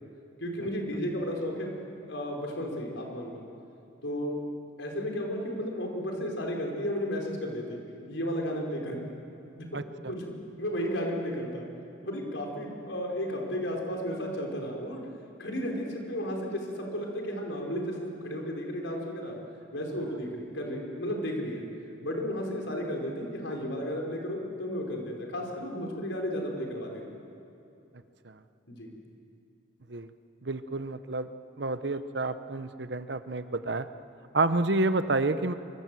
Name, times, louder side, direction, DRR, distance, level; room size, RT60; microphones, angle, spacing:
voice 1, 0.4-1.8 2.1-3.4 4.0-4.4 4.8-7.8 8.1-9.0 9.6-9.7 10.1-10.2 10.6-11.7 12.0-15.0 15.4-19.4 19.7-21.6 22.0-27.0 28.7-28.9, equal, 80° left, 1 dB, 4.9 m, -33 dB
voice 2, 30.4-31.3 31.6-33.9 34.3-35.5, right 2 dB, 65° right, 11 dB, 0.9 m, -29 dB
24.5 x 24.0 x 7.7 m, 2.7 s
head